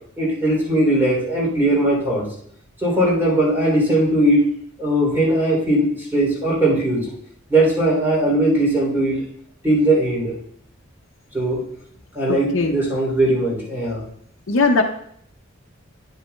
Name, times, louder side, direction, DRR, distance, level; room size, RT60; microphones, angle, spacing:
voice 1, 0.2-2.3 2.8-4.5 4.8-7.1 7.5-9.2 9.6-10.3 11.3-11.6 12.1-14.0, right 1 dB, 10° right, -5 dB, 3.0 m, -19 dB
voice 2, 12.3-12.8 14.5-14.8, left 3 dB, 65° left, 2 dB, 0.6 m, -19 dB
10.0 x 8.0 x 2.2 m, 0.67 s
head